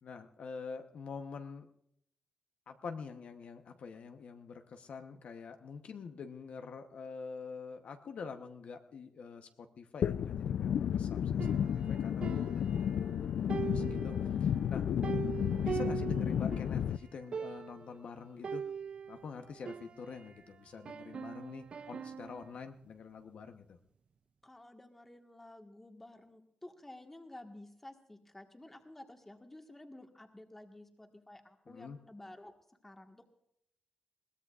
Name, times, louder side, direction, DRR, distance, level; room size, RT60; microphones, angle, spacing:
voice 1, 0.0-1.7 2.7-13.3 13.6-14.9 15.6-18.7 19.1-23.8 31.7-32.0, left 5 dB, 60° left, 5 dB, 0.9 m, -46 dB
sound 1, 10.0-17.0, left 9 dB, 75° left, 0.4 m, -32 dB
sound 2, 11.4-13.2 13.5-16.8 17.1-17.2 17.3-17.9 18.4-20.4 20.9-22.5, right 6 dB, 45° right, 0.4 m, -42 dB
voice 2, 24.4-32.5 32.8-33.3, left 1 dB, 10° left, 4 dB, 1.5 m, -52 dB
21.5 x 17.5 x 2.4 m, 0.76 s
wide cardioid pair, 150°, 2 cm